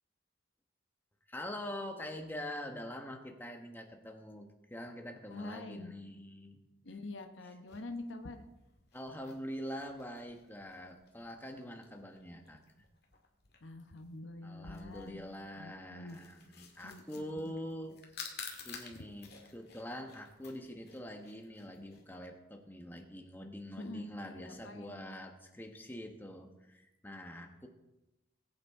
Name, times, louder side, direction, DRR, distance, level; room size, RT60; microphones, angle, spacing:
voice 1, 1.3-6.7 8.9-12.6 14.4-18.0 18.6-27.7, equal, 10° left, 4 dB, 1.2 m, -44 dB
voice 2, 5.3-5.9 6.8-8.4 13.6-15.3 15.6-16.2 16.8-17.4 23.8-25.0, left 2 dB, 80° left, 6 dB, 1.0 m, -46 dB
sound 1, 7.7-22.1, left 6 dB, 55° left, 2.0 m, -53 dB
20.5 x 8.7 x 3.7 m, 0.98 s
head